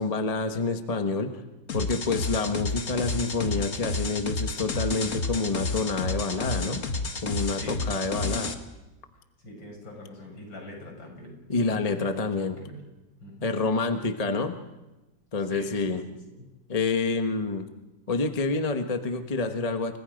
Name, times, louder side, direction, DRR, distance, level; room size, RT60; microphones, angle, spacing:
voice 1, 0.0-1.4 1.7-6.8 7.2-8.5 11.5-12.6 13.4-14.6 15.3-16.0 16.7-17.7 18.1-20.0, left 3 dB, 25° left, 6 dB, 1.1 m, -28 dB
sound 1, 1.7-8.5, left 3 dB, 40° left, 1.8 m, -31 dB
voice 2, 7.5-7.8 9.4-12.3 12.6-12.8 13.2-13.5 15.5-15.8 16.1-16.4, left 1 dB, 70° left, 1 dB, 7.4 m, -43 dB
30.0 x 23.5 x 5.2 m, 1.1 s
omnidirectional pair, 2.1 m